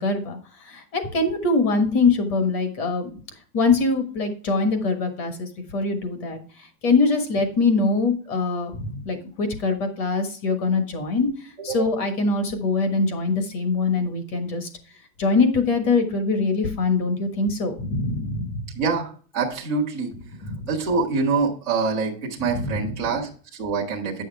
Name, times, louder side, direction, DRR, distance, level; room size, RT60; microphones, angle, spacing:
voice 1, 0.0-3.2 3.5-14.7 15.2-18.7 20.4-20.7 22.5-22.9, left 3 dB, 25° left, 6 dB, 1.4 m, -23 dB
voice 2, 18.7-20.1 20.7-24.2, right 4 dB, 5° left, -8 dB, 0.3 m, -25 dB
9.6 x 6.4 x 3.3 m, 0.41 s
supercardioid pair, 160°, 49 cm